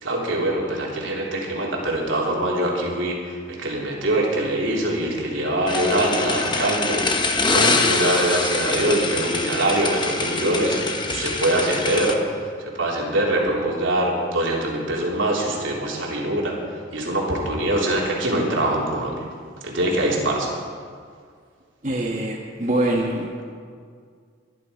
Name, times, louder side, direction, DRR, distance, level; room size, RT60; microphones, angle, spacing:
voice 1, 0.0-12.4 12.8-16.5 16.9-19.2 19.6-20.5, right 1 dB, 80° right, -3 dB, 3.4 m, -23 dB
sound 1, 5.7-12.1, left 3 dB, 25° left, 1.1 m, -24 dB
voice 2, 21.8-23.4, right 1 dB, 35° right, -2 dB, 1.4 m, -24 dB
22.5 x 10.5 x 5.2 m, 2.1 s
head